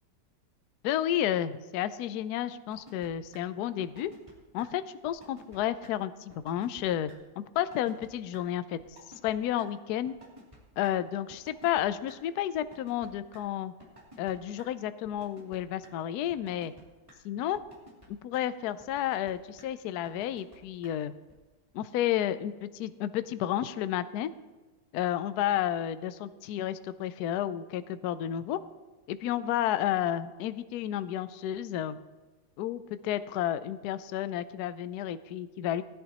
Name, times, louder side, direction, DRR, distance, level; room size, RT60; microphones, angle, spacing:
voice 1, 0.8-4.1 4.5-7.1 7.4-8.8 9.2-10.1 10.8-13.7 14.2-16.7 17.2-17.6 18.1-21.1 21.7-24.3 24.9-28.6 29.1-32.0 32.6-35.8, left 11 dB, 85° left, 13 dB, 0.8 m, -31 dB
sound 1, 2.7-3.1 3.3-3.4 3.8-4.3 4.6-4.7 5.0-5.6 5.8-5.9 6.3-6.8 7.1-7.2 7.5-8.1 8.3-8.4 8.8-9.3 9.6-9.7 10.0-10.9 11.3-12.1 12.5-13.4 13.8-14.3 14.6-14.7 15.0-15.6 15.8-15.9 16.3-16.8 17.1-17.2 17.5-18.1 18.3-18.4 18.8-19.3 19.6-19.7 20.0-20.6 20.8-20.9 21.3-21.4, right 1 dB, 15° right, 2.9 m, -52 dB
19.0 x 10.5 x 3.0 m, 1.2 s
omnidirectional pair, 2.3 m